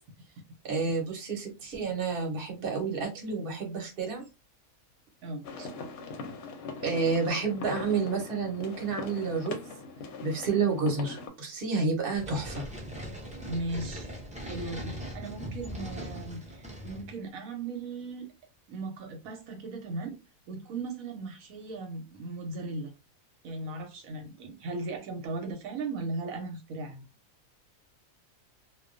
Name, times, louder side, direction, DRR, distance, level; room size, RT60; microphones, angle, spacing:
voice 1, 0.6-4.2 5.6-5.7 6.8-9.7 10.2-12.7, right 4 dB, 45° right, 0.9 m, -30 dB
sound 1, 5.4-11.3, left 4 dB, 65° left, 0.8 m, -41 dB
sound 2, 12.1-17.1, equal, 10° right, 0.4 m, -40 dB
voice 2, 13.5-14.1 14.4-18.3 18.7-20.2 20.5-22.9 23.4-27.0, right 3 dB, 85° right, 1.0 m, -37 dB
2.2 x 2.2 x 2.4 m
omnidirectional pair, 1.4 m